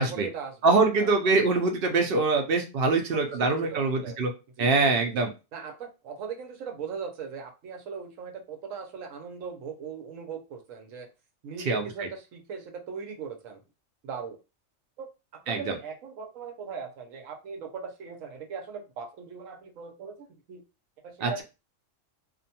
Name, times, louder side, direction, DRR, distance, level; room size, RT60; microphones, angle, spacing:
voice 1, 0.0-1.3 2.9-4.2 4.6-5.2 5.5-11.1 11.4-13.6 14.0-14.4 15.0-20.6 21.0-21.4, right 6 dB, 90° right, 3 dB, 1.1 m, -39 dB
voice 2, 0.6-4.3 4.6-5.3 11.7-12.1 15.5-15.8 21.2-21.3, right 3 dB, 60° right, 5 dB, 0.6 m, -24 dB
2.6 x 2.2 x 2.7 m, 0.28 s
omnidirectional pair, 1.3 m